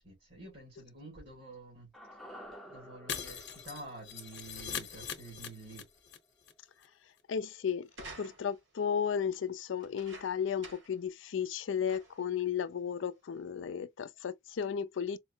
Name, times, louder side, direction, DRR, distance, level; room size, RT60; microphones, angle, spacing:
voice 1, 0.0-5.9, right 2 dB, 60° right, 1.9 m, -49 dB
sound 1, 1.9-6.2 6.5-6.6, equal, ahead, 0.6 m, -53 dB
Shatter, 3.1-6.2 6.4-6.5 6.8-6.9, left 7 dB, 60° left, 0.8 m, -41 dB
voice 2, 7.3-7.9 8.2-15.2, left 7 dB, 85° left, 0.4 m, -34 dB
sound 2, 7.9-8.7 9.8-11.0 11.4-11.5 11.9-12.3 13.1-13.2, right 3 dB, 85° right, 1.6 m, -51 dB
4.4 x 2.0 x 2.7 m
head